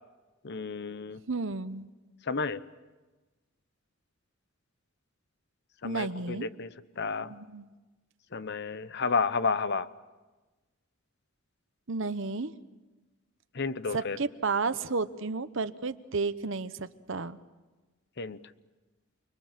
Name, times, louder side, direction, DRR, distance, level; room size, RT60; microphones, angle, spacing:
voice 1, 0.4-1.2 2.3-2.6 5.8-7.3 8.3-9.9 13.5-14.2 18.2-18.4, left 4 dB, 55° left, 14 dB, 0.9 m, -31 dB
voice 2, 1.3-1.9 5.8-6.5 7.3-7.7 11.9-12.5 13.9-17.4, right 4 dB, 70° right, 12 dB, 1.0 m, -32 dB
30.0 x 22.5 x 7.6 m, 1.2 s
head